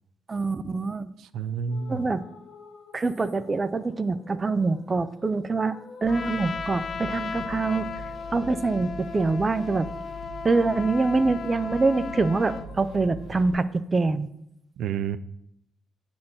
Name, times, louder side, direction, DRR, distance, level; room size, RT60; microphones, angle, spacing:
voice 1, 0.3-1.1 1.9-2.2 2.9-5.8 6.0-7.9 8.3-9.9 10.4-14.3, right 3 dB, 30° right, 15 dB, 0.5 m, -25 dB
voice 2, 1.2-2.1 14.8-15.2, right 6 dB, 75° right, 14 dB, 0.5 m, -30 dB
sound 1, 1.7-13.8, left 5 dB, 65° left, 1.1 m, -52 dB
sound 2, 6.0-13.5, equal, 60° right, 1.4 m, -42 dB
Trumpet, 6.1-12.7, left 5 dB, 50° left, 0.5 m, -36 dB
9.1 x 4.4 x 7.3 m, 0.77 s
cardioid pair, 90°, 0 cm